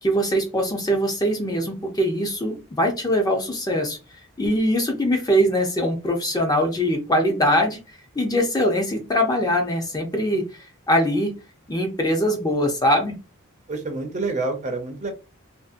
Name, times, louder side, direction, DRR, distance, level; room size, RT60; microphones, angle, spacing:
voice 1, 0.0-4.0 4.4-7.8 8.2-11.3 11.7-13.2, equal, 20° left, 2 dB, 0.5 m, -22 dB
voice 2, 13.7-15.1, right 3 dB, 35° right, 5 dB, 0.5 m, -27 dB
2.6 x 2.5 x 2.4 m, 0.30 s
head